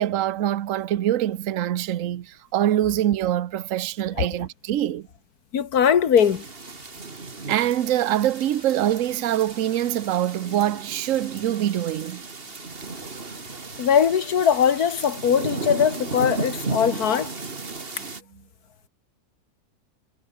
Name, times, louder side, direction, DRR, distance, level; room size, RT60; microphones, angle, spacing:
voice 1, 0.0-5.1 7.5-12.2 18.0-18.1, right 12 dB, 60° right, 1.1 m, -24 dB
voice 2, 5.5-6.5 13.8-17.3, left 8 dB, 90° left, 1.9 m, -20 dB
sound 1, 6.2-18.2, right 3 dB, 40° right, 2.3 m, -35 dB
omnidirectional pair, 1.6 m